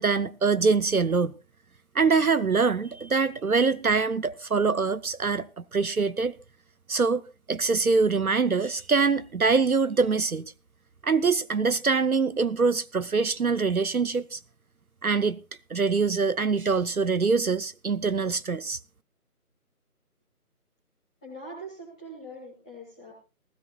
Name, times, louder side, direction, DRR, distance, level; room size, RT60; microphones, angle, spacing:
voice 1, 0.0-1.3 1.9-6.4 6.9-10.5 11.0-14.4 15.0-15.4 15.7-18.8, right 4 dB, 65° right, 0.8 m, -24 dB
voice 2, 21.2-23.1, right 1 dB, 5° left, 2.0 m, -42 dB
20.0 x 16.0 x 2.3 m
figure-of-eight pair, 170°, 46 cm